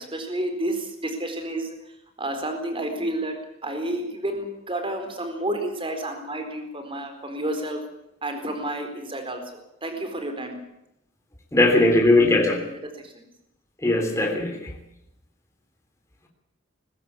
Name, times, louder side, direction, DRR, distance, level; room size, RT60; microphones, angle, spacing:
voice 1, 0.0-1.8 2.2-7.8 8.2-10.5 11.5-11.7 12.3-12.6, right 1 dB, 25° right, 6 dB, 4.2 m, -30 dB
voice 2, 11.5-12.6 13.8-14.7, left 2 dB, 15° left, 1 dB, 3.4 m, -19 dB
20.5 x 16.0 x 8.6 m, 0.81 s
head